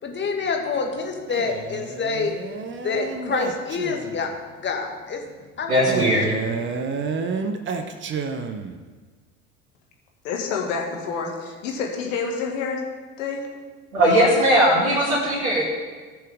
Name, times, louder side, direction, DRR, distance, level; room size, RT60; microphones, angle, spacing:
voice 1, 0.0-2.3 2.8-4.3 4.6-5.2 5.6-6.2 14.0-14.3, left 5 dB, 25° left, 2 dB, 2.0 m, -27 dB
Male speech man speaking, 1.3-4.3 5.9-8.8, right 5 dB, 25° right, 1.0 m, -30 dB
voice 2, 5.7-6.3 13.9-15.6, right 1 dB, 75° right, -7 dB, 3.0 m, -19 dB
voice 3, 10.2-12.8 13.2-13.5, left 5 dB, 60° left, 1 dB, 2.1 m, -28 dB
18.0 x 6.7 x 3.8 m, 1.4 s
figure-of-eight pair, 70°, 42 cm